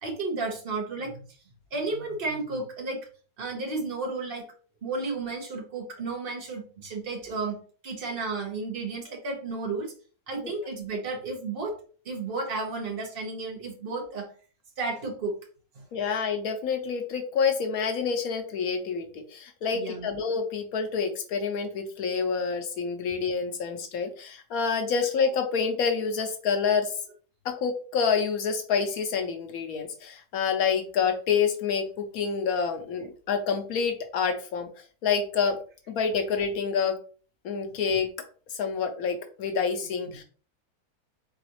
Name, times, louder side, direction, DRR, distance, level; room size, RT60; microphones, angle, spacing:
voice 1, 0.0-1.2 1.7-3.1 3.4-4.4 4.8-9.9 10.3-11.8 12.0-14.3 14.8-15.4 15.7-15.8 19.7-20.1, right 3 dB, 40° right, 0 dB, 1.3 m, -33 dB
voice 2, 15.9-27.0 27.4-34.7 35.0-35.6 35.9-37.0 37.4-38.1 38.5-40.2, left 6 dB, 75° left, 6 dB, 1.1 m, -27 dB
4.0 x 3.8 x 3.0 m, 0.40 s
omnidirectional pair, 1.6 m